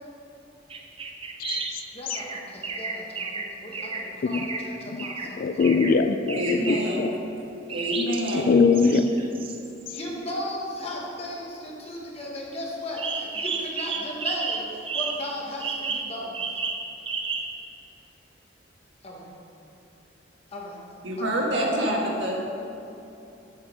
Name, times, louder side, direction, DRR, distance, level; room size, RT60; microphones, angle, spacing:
sound 1, 0.7-1.8 2.1-4.7 5.0-5.3 5.6-5.9 6.3-6.9 7.7-8.4 8.7-10.1 13.0-15.3 15.6-17.6, right 4 dB, 30° right, 0.6 m, -32 dB
voice 1, 1.9-5.6 9.9-16.3 19.0-19.3 20.5-20.8 21.2-21.5 21.8-22.0, left 1 dB, 35° left, -3 dB, 1.4 m, -36 dB
voice 2, 5.3-7.1 8.3-9.1, left 4 dB, 50° left, 9 dB, 0.3 m, -22 dB
voice 3, 6.4-7.1 7.7-8.5 21.0-22.4, equal, 85° right, -2 dB, 1.5 m, -26 dB
7.2 x 5.0 x 6.2 m, 2.8 s
head